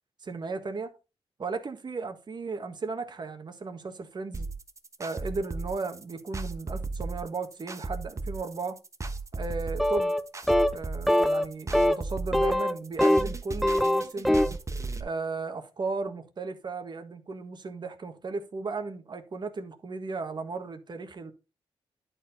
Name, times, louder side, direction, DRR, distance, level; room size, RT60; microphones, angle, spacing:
voice 1, 0.2-0.9 1.4-4.5 5.0-8.8 9.3-10.1 10.7-14.4 15.0-21.3, right 4 dB, 50° right, 1.5 m, -35 dB
sound 1, 4.3-15.0, right 3 dB, 30° right, 1.2 m, -35 dB
sound 2, 9.8-10.2 10.5-10.8 11.1-11.4 11.7-12.0 12.3-13.3 13.6-14.6, left 1 dB, ahead, 0.7 m, -23 dB
10.5 x 4.6 x 4.1 m
cardioid pair, 85°, 10 cm